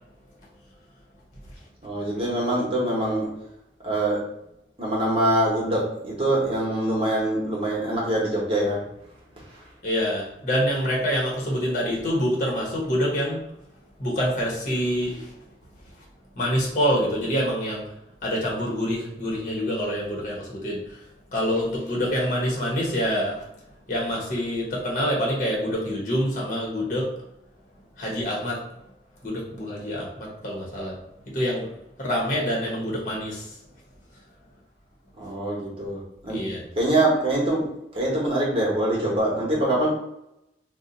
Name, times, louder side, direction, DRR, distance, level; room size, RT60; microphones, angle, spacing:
voice 1, 1.8-3.3 3.8-4.2 4.8-8.8 9.4-9.7 35.1-36.5 36.8-37.7 37.9-39.9, right 1 dB, 30° right, -4 dB, 1.1 m, -24 dB
voice 2, 9.8-13.5 14.0-15.3 16.3-17.9 18.2-21.0 21.3-23.4 23.9-27.1 28.0-28.7 29.2-31.0 31.3-31.7 32.0-33.5 36.3-36.6, equal, 45° left, -3 dB, 1.0 m, -26 dB
2.7 x 2.2 x 3.9 m, 0.84 s
head